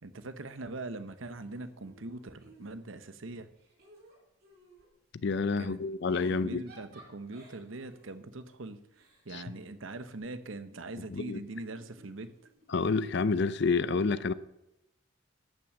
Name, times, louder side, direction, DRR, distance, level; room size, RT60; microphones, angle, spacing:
voice 1, 0.0-3.5 5.6-5.8 6.3-8.8 9.2-12.3, right 2 dB, 70° right, 0.9 m, -42 dB
Giggle / Chuckle chortle, 1.5-3.1 3.5-4.9 5.9-10.4 11.4-12.8, right 1 dB, 50° right, 3.8 m, -58 dB
voice 2, 5.2-6.6 9.3-9.4 11.1-11.4 12.7-14.3, left 4 dB, 55° left, 0.5 m, -29 dB
13.0 x 6.1 x 7.1 m
head